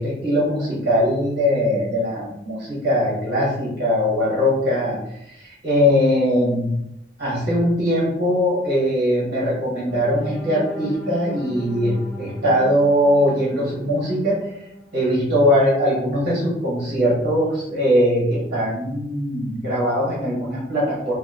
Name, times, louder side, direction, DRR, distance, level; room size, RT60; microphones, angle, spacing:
voice 1, 0.0-6.7 7.2-14.6 14.9-21.1, equal, 55° right, -7 dB, 1.1 m, -21 dB
sound 1, 9.9-15.8 16.3-16.4 16.8-17.0, equal, ahead, 0.5 m, -38 dB
3.0 x 2.6 x 2.5 m, 0.80 s
head